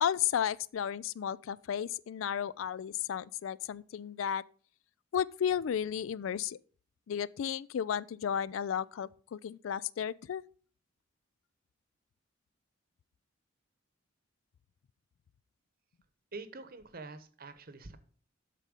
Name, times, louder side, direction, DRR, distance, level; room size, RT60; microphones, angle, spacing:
voice 1, 0.0-4.4 5.1-6.6 7.1-10.4, left 8 dB, 75° left, 0.3 m, -33 dB
voice 2, 16.3-18.0, right 3 dB, 45° right, 0.9 m, -46 dB
12.0 x 4.2 x 5.2 m
head